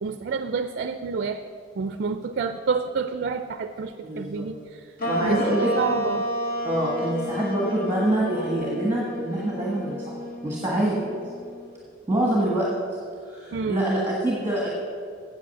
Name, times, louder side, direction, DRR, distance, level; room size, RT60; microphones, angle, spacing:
voice 1, 0.0-1.4 1.8-4.9 5.2-6.3 13.5-13.8, right 5 dB, 55° right, 10 dB, 0.4 m, -29 dB
voice 2, 4.0-4.4 5.0-5.7 6.6-10.1 10.4-11.0 12.1-12.7 13.2-14.7, right 1 dB, 10° right, -3 dB, 1.5 m, -25 dB
sound 1, 5.0-11.7, equal, 50° left, 1.4 m, -31 dB
8.6 x 7.9 x 7.0 m, 2.2 s
head